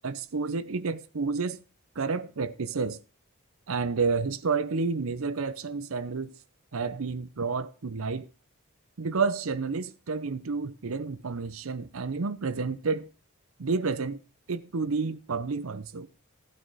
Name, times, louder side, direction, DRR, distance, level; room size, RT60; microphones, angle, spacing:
voice 1, 0.0-1.6 2.0-3.0 3.7-6.3 6.7-8.3 9.0-13.1 13.6-14.2 14.5-16.1, right 4 dB, 70° right, 0.7 m, -30 dB
14.5 x 9.3 x 4.1 m
head